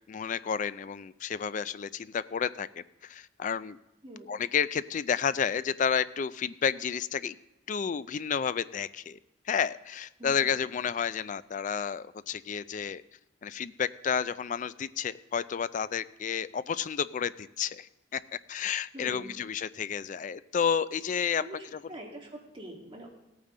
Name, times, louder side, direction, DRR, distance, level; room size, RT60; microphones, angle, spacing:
voice 1, 0.1-3.8 4.3-7.4 7.7-9.2 9.5-13.0 13.4-18.2 18.5-21.4 21.7-21.8, left 7 dB, 40° left, 16 dB, 0.3 m, -31 dB
voice 2, 10.2-10.5 18.9-19.4 21.4-23.1, right 1 dB, 25° right, -1 dB, 2.2 m, -44 dB
17.0 x 8.9 x 3.8 m, 0.92 s
head